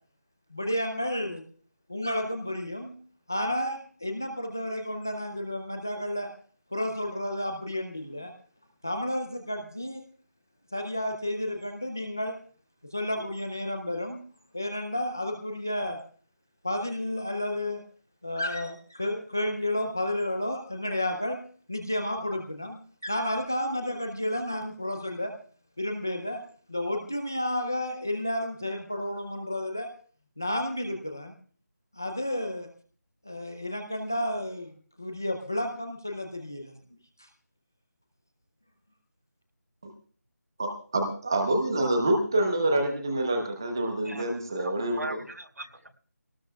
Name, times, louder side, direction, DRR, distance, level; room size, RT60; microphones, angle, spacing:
voice 1, 0.5-1.4 1.9-2.9 3.3-6.3 6.7-8.3 8.8-10.0 10.7-12.4 12.9-14.2 14.5-16.0 16.6-17.8 18.2-21.4 21.7-25.3 25.8-26.4 26.7-29.9 30.4-31.3 31.9-32.7 33.2-37.3, left 1 dB, 10° left, 4 dB, 0.5 m, -31 dB
voice 2, 40.6-45.2, right 1 dB, 15° right, 4 dB, 0.9 m, -27 dB
voice 3, 44.0-45.9, right 1 dB, 75° right, 4 dB, 4.9 m, -40 dB
21.0 x 18.5 x 2.3 m, 0.43 s
figure-of-eight pair, 180°, 9 cm